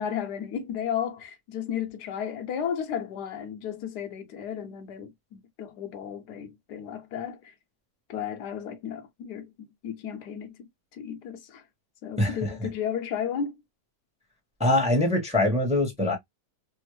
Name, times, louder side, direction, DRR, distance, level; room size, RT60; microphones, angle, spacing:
voice 1, 0.0-7.5 8.1-11.6 12.0-13.6, left 8 dB, 70° left, 1.3 m, -34 dB
voice 2, 12.2-12.5 14.6-16.2, left 1 dB, 5° right, 0.8 m, -23 dB
3.5 x 2.0 x 3.1 m
omnidirectional pair, 1.9 m